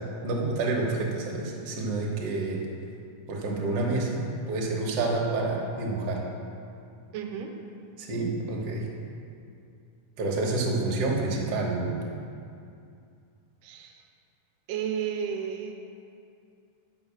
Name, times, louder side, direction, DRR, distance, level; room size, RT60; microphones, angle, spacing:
voice 1, 0.2-2.6 3.3-6.2 8.0-8.9 10.2-12.0, right 2 dB, 55° right, -2 dB, 2.0 m, -28 dB
voice 2, 7.1-7.5 13.6-13.9 14.7-15.7, right 8 dB, 90° right, 3 dB, 2.4 m, -32 dB
10.0 x 5.6 x 6.9 m, 2.5 s
omnidirectional pair, 3.8 m